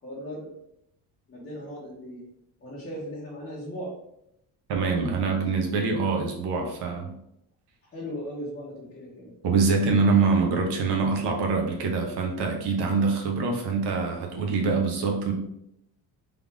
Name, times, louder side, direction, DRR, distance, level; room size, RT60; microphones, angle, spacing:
voice 1, 0.0-0.5 1.3-2.2 2.6-3.9 7.9-9.3, equal, 20° left, -9 dB, 1.2 m, -37 dB
voice 2, 4.7-7.1 9.4-15.3, right 4 dB, 80° right, 1 dB, 1.2 m, -24 dB
3.8 x 3.4 x 3.6 m, 0.78 s
cardioid pair, 180°, 40 cm